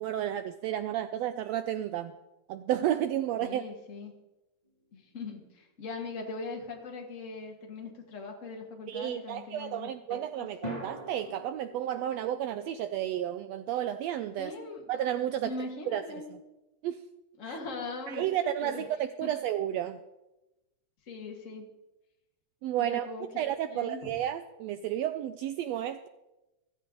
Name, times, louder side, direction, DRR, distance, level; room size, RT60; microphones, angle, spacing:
voice 1, 0.0-2.1 2.5-3.7 8.9-14.5 14.9-15.5 15.9-16.0 16.8-17.0 17.5-17.6 18.1-20.0 22.6-23.1 23.4-26.1, right 11 dB, 85° right, 10 dB, 1.5 m, -32 dB
voice 2, 3.4-4.2 4.9-10.5 14.4-14.9 15.4-16.3 17.4-18.4 18.6-18.9 19.2-19.3 21.1-21.7 22.8-23.3 23.7-24.1, left 3 dB, 30° left, 1 dB, 1.7 m, -40 dB
sound 1, 4.6-5.8 10.6-14.9, equal, 15° left, 3.2 m, -46 dB
14.5 x 14.0 x 3.8 m, 1.0 s
omnidirectional pair, 3.4 m